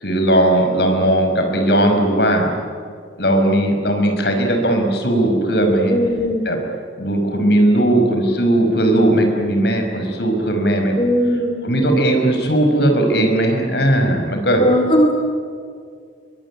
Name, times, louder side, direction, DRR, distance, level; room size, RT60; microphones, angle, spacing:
voice 1, 0.0-2.5 3.2-5.9 6.4-6.6 7.0-10.9 11.6-14.6, right 1 dB, 65° left, 4 dB, 5.6 m, -17 dB
voice 2, 5.9-6.5 11.0-11.7 14.6-15.1, equal, 30° left, 2 dB, 2.4 m, -18 dB
23.0 x 23.0 x 10.0 m, 2.2 s
head